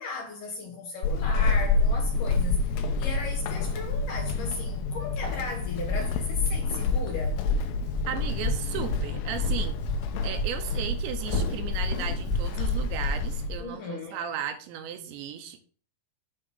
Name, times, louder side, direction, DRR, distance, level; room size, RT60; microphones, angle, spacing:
voice 1, 0.0-7.4 13.6-14.2, left 3 dB, 70° left, 2.0 m, -36 dB
Walk footsteps / Squeak, 1.0-13.7, left 3 dB, 90° left, 3.1 m, -28 dB
Walk footsteps, 5.3-10.1 10.3-13.0, equal, 10° left, 0.7 m, -31 dB
voice 2, 8.1-9.8 10.2-15.6, right 9 dB, 85° right, 3.2 m, -35 dB
8.4 x 3.8 x 6.0 m
omnidirectional pair, 5.2 m